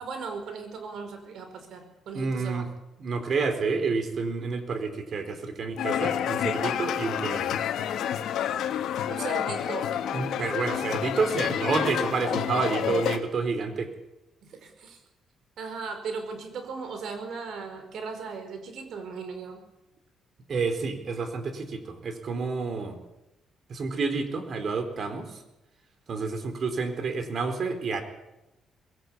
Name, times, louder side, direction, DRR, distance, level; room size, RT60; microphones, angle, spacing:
voice 1, 0.0-2.6 9.1-10.0 14.4-15.0 15.6-19.6, right 5 dB, 70° right, 7 dB, 5.1 m, -37 dB
voice 2, 2.1-2.7 3.0-7.5 10.1-13.9 20.5-23.0 23.7-25.4 26.1-28.0, right 4 dB, 55° right, 8 dB, 4.1 m, -29 dB
sound 1, 5.8-13.2, left 10 dB, 80° left, 1.6 m, -29 dB
21.0 x 17.5 x 8.7 m, 0.95 s
cardioid pair, 90°, 0 cm